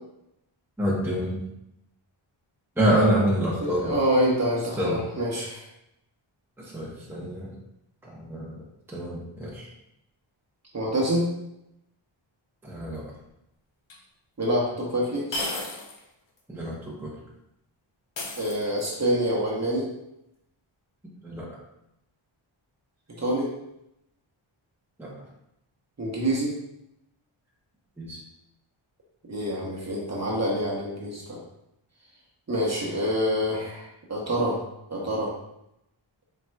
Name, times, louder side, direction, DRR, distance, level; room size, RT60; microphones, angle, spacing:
voice 1, 0.8-1.4 2.8-4.0 4.8-5.0 6.6-7.5 8.0-8.6 8.9-9.7 12.6-13.0 16.5-17.1 21.2-21.5 25.0-25.1 28.0-28.2, equal, 5° right, -5 dB, 0.8 m, -27 dB
voice 2, 3.6-5.6 10.7-11.2 14.4-15.3 18.4-19.9 23.2-23.5 26.0-26.5 29.3-31.4 32.5-34.6 34.9-35.3, equal, 30° right, -4 dB, 1.0 m, -26 dB
sound 1, 13.9-14.0 15.3-16.0 16.4-16.5 18.2-19.0, left 2 dB, 60° left, 0.8 m, -33 dB
4.3 x 3.8 x 2.3 m, 0.83 s
wide cardioid pair, 120°, 50 cm